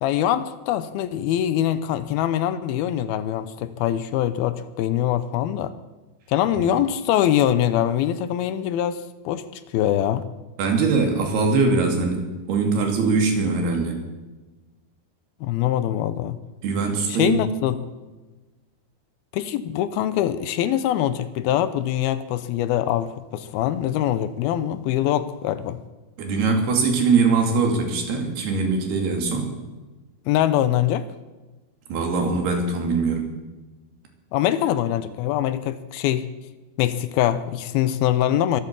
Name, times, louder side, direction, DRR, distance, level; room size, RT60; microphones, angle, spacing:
voice 1, 0.0-5.7 6.3-9.5 9.7-10.3 15.4-16.4 17.1-17.8 19.3-25.8 30.3-31.1 34.3-36.3 36.8-38.6, left 11 dB, 80° left, 2.6 m, -23 dB
voice 2, 10.6-14.0 16.6-17.4 26.2-29.5 31.9-33.3, right 4 dB, 90° right, 4.6 m, -22 dB
22.5 x 8.6 x 7.5 m
omnidirectional pair, 4.5 m